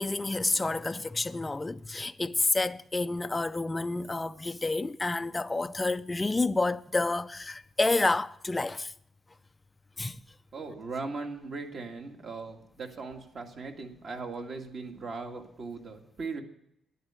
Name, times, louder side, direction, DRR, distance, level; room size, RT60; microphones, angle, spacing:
voice 1, 0.0-8.9 10.0-10.2, left 2 dB, 15° left, 0.4 m, -29 dB
voice 2, 10.5-16.4, right 4 dB, 45° right, 1.9 m, -39 dB
11.0 x 7.9 x 8.8 m
cardioid pair, 135°, 0 cm